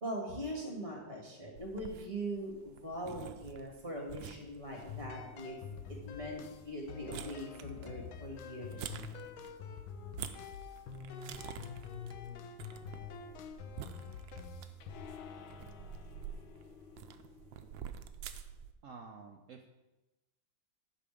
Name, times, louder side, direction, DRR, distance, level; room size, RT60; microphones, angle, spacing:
voice 1, 0.0-5.6 5.9-8.9, equal, 35° right, -1 dB, 2.7 m, -41 dB
sound 1, 1.6-18.7, right 9 dB, 80° right, 1.4 m, -49 dB
sound 2, 4.8-18.2, left 6 dB, 85° left, 1.6 m, -47 dB
voice 2, 18.8-19.7, right 4 dB, 65° right, 3 dB, 0.8 m, -50 dB
11.5 x 6.0 x 5.0 m, 1.1 s
omnidirectional pair, 2.1 m